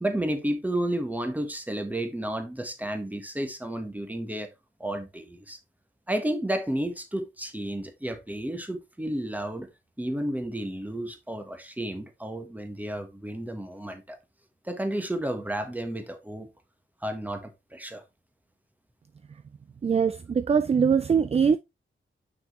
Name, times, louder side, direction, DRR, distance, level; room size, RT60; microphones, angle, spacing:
voice 1, 0.0-4.5 4.8-5.6 6.1-9.7 10.0-14.2 14.6-16.5 17.0-18.0, right 1 dB, 10° right, 1.3 m, -32 dB
voice 2, 19.8-21.6, right 6 dB, 30° right, 0.4 m, -22 dB
6.0 x 6.0 x 3.2 m
wide cardioid pair, 105°, 21 cm